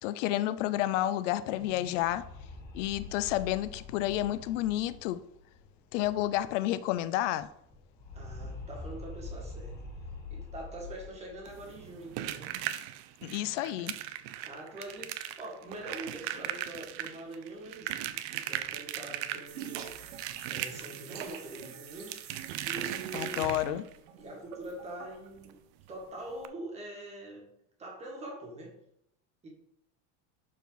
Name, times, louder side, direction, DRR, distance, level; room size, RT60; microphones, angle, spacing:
voice 1, 0.0-2.2 2.7-5.2 5.9-7.5 13.2-14.0 23.1-23.8, left 14 dB, 80° left, 0.6 m, -30 dB
sound 1, 1.6-6.6 6.9-7.0 7.2-11.6, left 3 dB, 25° left, 2.4 m, -45 dB
voice 2, 8.1-9.8 10.3-12.5 14.4-18.2 18.5-19.9 20.5-22.2 22.6-23.5 24.2-25.6 25.9-27.5 27.8-28.8 29.4-29.5, right 1 dB, 20° right, 2.1 m, -44 dB
sound 2, 11.4-24.0 25.4-25.5 25.8-25.9 26.4-26.5, right 12 dB, 55° right, 0.7 m, -38 dB
sound 3, 19.5-25.3, right 8 dB, 80° right, 1.6 m, -46 dB
11.5 x 4.7 x 4.1 m
cardioid pair, 180°, 36 cm